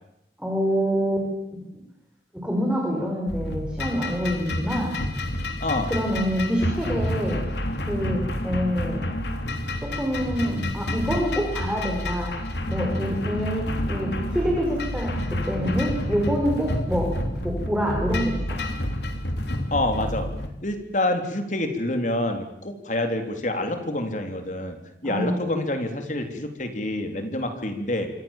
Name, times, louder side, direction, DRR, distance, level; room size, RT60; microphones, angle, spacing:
voice 1, 0.4-1.3 2.3-4.9 5.9-7.4 7.9-9.0 9.8-12.4 12.7-17.1 17.4-18.6 25.0-25.4, equal, 5° right, -2 dB, 5.8 m, -26 dB
sound 1, 3.3-20.5, left 1 dB, 75° left, 3.5 m, -29 dB
voice 2, 5.6-5.9 19.7-20.3 20.6-24.8 25.0-28.1, left 1 dB, 45° left, 6 dB, 3.8 m, -27 dB
27.0 x 25.5 x 7.5 m, 0.83 s
head